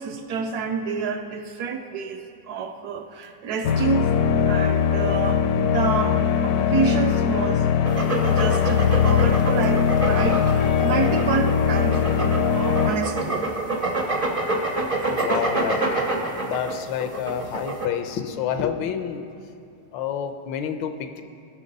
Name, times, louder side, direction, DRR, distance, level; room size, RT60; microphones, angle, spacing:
voice 1, 0.0-4.1 4.5-7.7 8.3-12.1 12.4-13.4 15.3-15.4, right 5 dB, 70° right, 6 dB, 1.0 m, -28 dB
sound 1, 3.6-12.9, left 7 dB, 70° left, 0.9 m, -21 dB
sound 2, 7.8-17.9, right 2 dB, 40° right, 0.5 m, -27 dB
voice 2, 15.1-15.9 16.2-19.3 19.9-21.2, left 8 dB, 90° left, 8 dB, 1.4 m, -28 dB
16.0 x 5.9 x 5.3 m, 2.6 s
omnidirectional pair, 2.0 m